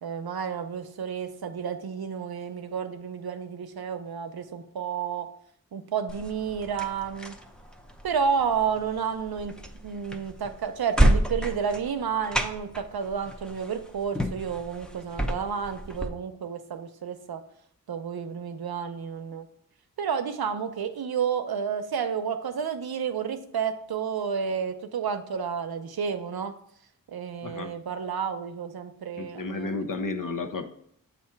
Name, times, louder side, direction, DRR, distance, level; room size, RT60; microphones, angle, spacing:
voice 1, 0.0-5.3 5.7-7.4 8.0-9.6 9.8-17.4 17.9-19.5 20.0-26.6 27.1-30.0, right 7 dB, 90° right, 8 dB, 0.6 m, -31 dB
sound 1, 6.1-16.1, right 1 dB, ahead, 0.6 m, -30 dB
voice 2, 27.4-27.7 29.2-30.7, left 3 dB, 65° left, 7 dB, 0.7 m, -32 dB
7.5 x 2.6 x 5.7 m, 0.68 s
wide cardioid pair, 80°, 36 cm